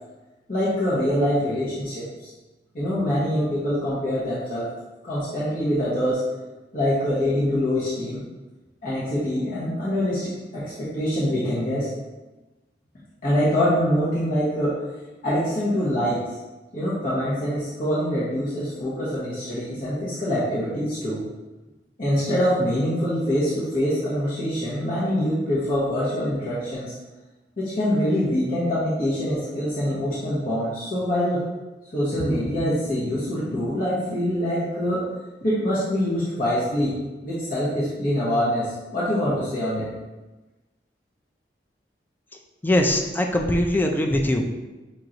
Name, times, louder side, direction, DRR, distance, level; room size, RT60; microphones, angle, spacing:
voice 1, 0.5-2.3 2.7-4.7 5.0-6.2 6.7-8.2 8.8-11.9 13.2-14.8 15.2-16.2 16.7-21.2 22.0-26.9 27.6-31.4 31.9-35.0 35.4-36.9 37.2-39.9, equal, 50° left, -10 dB, 1.0 m, -24 dB
voice 2, 42.6-44.5, left 1 dB, 10° left, 2 dB, 0.3 m, -21 dB
5.4 x 3.0 x 2.5 m, 1.1 s
head